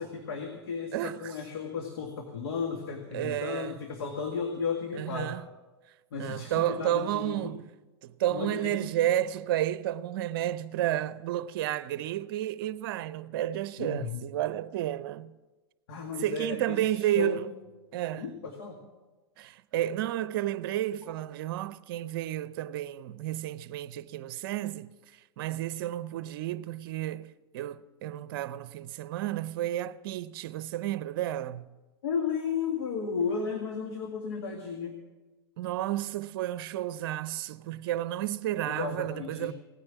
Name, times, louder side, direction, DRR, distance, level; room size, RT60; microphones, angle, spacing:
voice 1, 0.0-5.4 6.1-7.6 8.3-8.9 13.8-14.3 15.9-17.5 18.2-18.8 32.0-35.0 38.6-39.5, left 5 dB, 70° left, 2.0 m, -34 dB
voice 2, 0.9-1.3 3.1-3.8 4.9-5.4 6.2-7.6 8.0-15.3 16.2-17.5 17.9-18.3 19.4-24.9 25.4-31.7 35.6-39.5, right 13 dB, 60° right, 0.7 m, -31 dB
18.0 x 9.7 x 7.2 m
hypercardioid pair, 105°, 13 cm